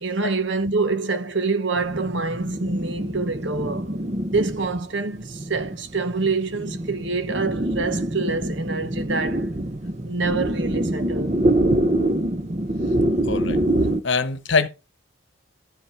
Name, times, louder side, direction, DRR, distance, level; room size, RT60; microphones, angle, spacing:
voice 1, 0.0-4.0 4.3-9.4 10.0-11.4, right 3 dB, 60° right, 1.0 m, -26 dB
sound 1, 1.8-14.0, right 1 dB, 35° right, 0.8 m, -25 dB
voice 2, 13.3-13.6 14.0-14.7, left 4 dB, 65° left, 1.0 m, -22 dB
13.0 x 5.2 x 4.5 m
head